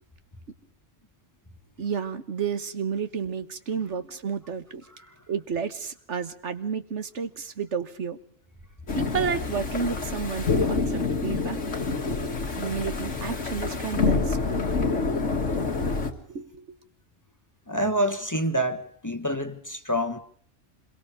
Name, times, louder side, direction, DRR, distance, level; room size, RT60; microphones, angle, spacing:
voice 1, 1.8-4.8 5.3-8.2 8.9-11.6 12.6-14.9 16.3-16.6, right 6 dB, 75° right, 1.6 m, -31 dB
sound 1, 8.9-16.1, left 4 dB, 85° left, 2.4 m, -27 dB
voice 2, 17.7-20.2, equal, 15° left, 1.3 m, -27 dB
27.0 x 22.5 x 5.0 m
omnidirectional pair, 1.2 m